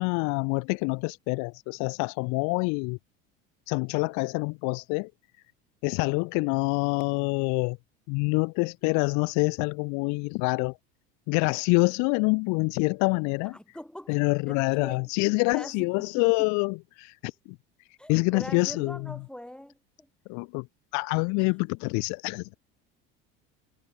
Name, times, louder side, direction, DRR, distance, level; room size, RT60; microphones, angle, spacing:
voice 1, 0.0-3.0 3.7-5.1 5.8-7.8 8.1-10.8 11.3-13.6 14.1-17.6 18.1-19.1 20.3-20.7 20.9-22.5, left 33 dB, 75° left, 1.5 m, -26 dB
voice 2, 13.5-15.1 15.5-15.9 16.2-16.5 18.0-20.1 21.4-21.5, left 1 dB, 5° left, 7.6 m, -43 dB
supercardioid pair, 90°, 29 cm